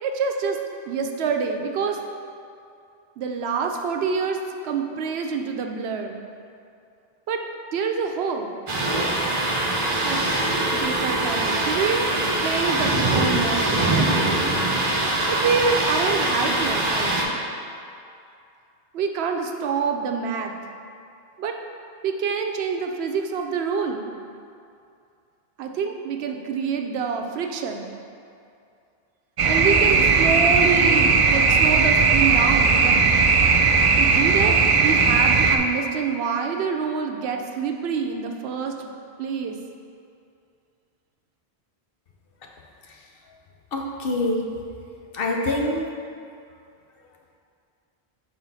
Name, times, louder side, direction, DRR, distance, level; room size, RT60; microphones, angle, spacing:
voice 1, 0.0-0.6 0.8-2.0 3.2-4.4 4.6-6.2 7.3-8.5 10.0-10.2 10.8-14.3 15.3-17.4 18.9-20.5 21.4-21.6 22.0-24.0 25.6-27.9 29.4-33.0 34.0-34.6 34.8-38.9 39.2-39.6, right 5 dB, 80° right, 4 dB, 0.8 m, -26 dB
Thunder, 8.7-17.2, right 2 dB, 35° right, 0.7 m, -23 dB
sound 1, 29.4-35.6, right 4 dB, 55° right, 0.3 m, -18 dB
voice 2, 43.7-44.4 45.1-45.9, left 1 dB, 65° left, 0 dB, 0.9 m, -25 dB
6.3 x 4.3 x 4.0 m, 2.5 s
omnidirectional pair, 1.1 m